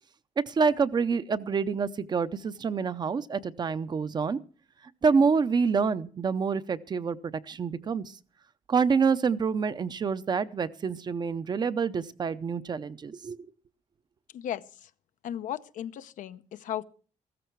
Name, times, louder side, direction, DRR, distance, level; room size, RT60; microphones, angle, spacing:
voice 1, 0.5-4.4 5.0-8.1 8.7-13.5, right 5 dB, 35° right, 14 dB, 0.6 m, -27 dB
voice 2, 14.3-14.9 15.2-16.8, left 10 dB, 80° left, 12 dB, 0.7 m, -36 dB
15.0 x 13.5 x 4.6 m, 0.41 s
wide cardioid pair, 160°, 13 cm